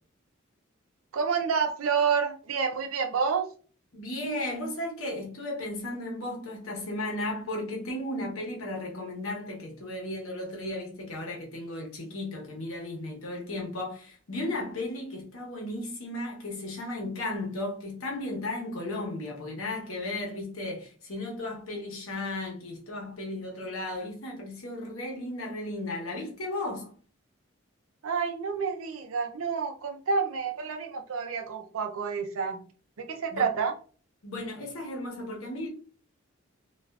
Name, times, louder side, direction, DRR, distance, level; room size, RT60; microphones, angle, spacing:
voice 1, 1.1-3.5 28.0-32.6 33.0-33.7, right 5 dB, 80° right, 0.5 m, -29 dB
voice 2, 3.9-26.9 33.3-33.5 34.2-35.7, left 1 dB, 75° left, 1.0 m, -35 dB
3.3 x 2.4 x 2.3 m
head